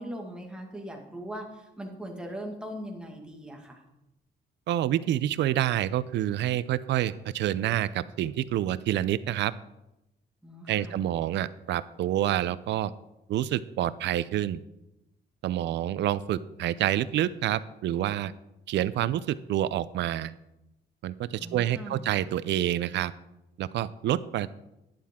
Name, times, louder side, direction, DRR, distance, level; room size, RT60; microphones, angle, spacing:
voice 1, 0.0-3.8 10.4-11.1 21.4-22.1, equal, 5° right, 1 dB, 1.8 m, -40 dB
voice 2, 4.7-9.5 10.7-12.9 13.3-14.6 15.4-18.3 18.7-20.3 21.0-23.1 23.6-24.5, right 12 dB, 75° right, 16 dB, 0.5 m, -28 dB
12.0 x 10.5 x 3.6 m, 0.89 s
cardioid pair, 150°, 18 cm